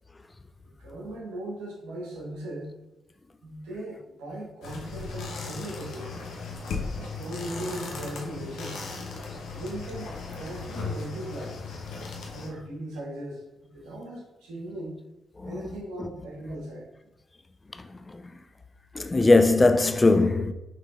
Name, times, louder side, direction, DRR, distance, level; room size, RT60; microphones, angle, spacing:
voice 1, 0.6-2.8 3.4-6.2 6.9-8.9 9.5-11.6 12.3-15.0 15.4-16.9, right 1 dB, 85° right, 1.2 m, -38 dB
sound 1, 4.6-12.5, left 4 dB, 75° left, 0.7 m, -36 dB
voice 2, 15.5-16.1 19.0-20.5, left 2 dB, 30° left, 0.4 m, -20 dB
5.7 x 3.1 x 2.4 m
supercardioid pair, 45°, 0 cm